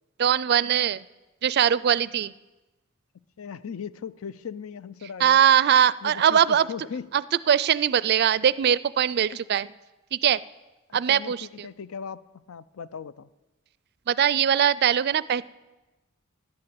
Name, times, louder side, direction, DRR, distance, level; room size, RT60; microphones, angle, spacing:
voice 1, 0.2-1.0 1.4-2.3 5.2-6.7 7.1-7.2 7.5-9.7 10.1-10.4 10.9-11.5 14.1-15.5, right 9 dB, 50° right, 20 dB, 0.4 m, -21 dB
voice 2, 3.4-5.4 6.0-7.0 9.3-9.4 10.9-13.3, left 6 dB, 85° left, 17 dB, 0.5 m, -38 dB
11.5 x 9.6 x 8.7 m, 1.1 s
head